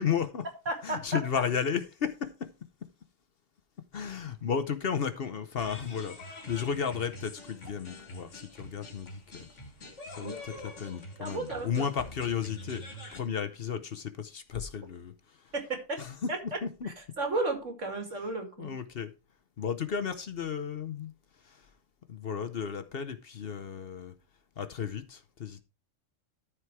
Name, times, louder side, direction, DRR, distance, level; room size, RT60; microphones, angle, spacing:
voice 1, 0.0-0.5 0.8-2.5 3.9-9.5 10.1-12.8 13.1-15.6 16.0-16.9 18.1-18.3 18.6-19.1 19.6-21.7 22.1-24.1 24.6-25.6, left 7 dB, 55° left, 0.9 m, -34 dB
voice 2, 0.7-1.0 10.2-10.4 11.2-11.8 15.5-16.0 16.3-16.4 16.8-18.7, right 2 dB, 75° right, 2.8 m, -33 dB
sound 1, 5.6-13.2, left 1 dB, 70° left, 2.2 m, -46 dB
13.0 x 4.7 x 4.6 m
omnidirectional pair, 1.3 m